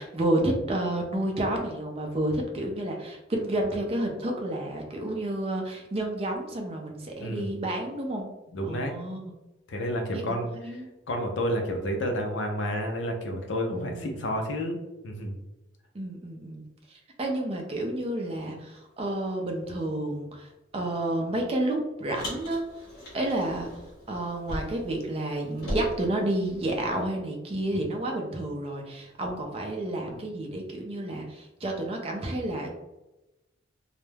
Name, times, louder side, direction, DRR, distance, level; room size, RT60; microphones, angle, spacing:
voice 1, 0.0-8.3 8.6-9.3 10.1-10.4 10.6-10.9 13.7-14.3 15.9-16.6 16.9-22.6 23.1-23.7 24.1-32.8, right 1 dB, 30° right, 2 dB, 0.4 m, -30 dB
voice 2, 7.2-7.6 8.5-8.9 9.7-10.8 11.1-14.8 15.0-15.4, equal, 70° left, 3 dB, 0.5 m, -30 dB
Car, 22.1-25.0 25.2-27.0, equal, 50° left, 1.0 m, -38 dB
2.2 x 2.0 x 3.2 m, 1.0 s
head